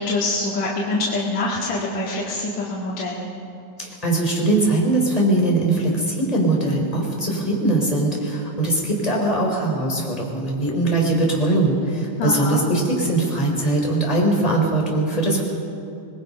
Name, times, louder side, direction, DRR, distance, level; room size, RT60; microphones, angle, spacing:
voice 1, 0.0-3.3 12.2-12.6, left 2 dB, 55° left, -6 dB, 3.3 m, -25 dB
voice 2, 3.8-15.4, right 2 dB, 10° left, -2 dB, 3.9 m, -21 dB
26.0 x 21.0 x 5.5 m, 2.5 s
omnidirectional pair, 4.1 m